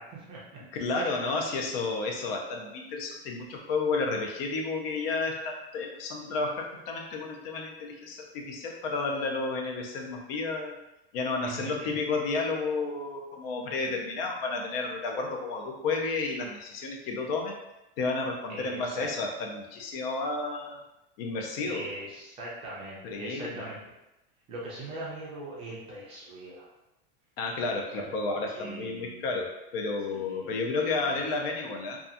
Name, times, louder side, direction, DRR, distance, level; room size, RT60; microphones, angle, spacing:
voice 1, 0.0-0.6 1.0-1.4 11.4-12.0 18.5-19.1 21.6-23.8 24.5-26.7 27.9-28.1 28.5-29.2 30.1-31.2, right 2 dB, 20° right, -6 dB, 0.4 m, -41 dB
voice 2, 0.7-10.8 11.1-17.6 18.0-20.8 21.2-21.9 23.0-23.6 27.4-32.0, left 3 dB, 70° left, 1 dB, 0.6 m, -31 dB
2.8 x 2.3 x 2.5 m, 0.94 s
supercardioid pair, 175°, 30 cm